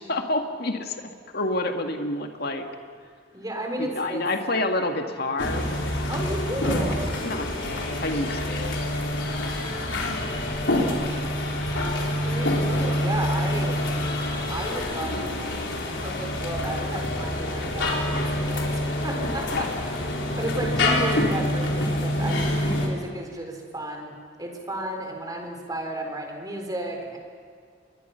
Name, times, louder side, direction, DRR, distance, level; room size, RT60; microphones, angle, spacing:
voice 1, 0.0-2.6 3.8-5.9 7.2-7.5 8.0-8.7 9.2-9.5 12.0-12.1 19.5-19.7, left 2 dB, 60° left, 4 dB, 2.0 m, -28 dB
voice 2, 3.3-4.2 6.1-7.0 10.6-10.9 11.9-13.8 14.5-20.1 20.4-27.2, right 1 dB, 20° right, 2 dB, 4.0 m, -33 dB
sound 1, 5.4-22.9, left 1 dB, 85° left, 3.9 m, -26 dB
27.5 x 22.5 x 5.8 m, 2.1 s
head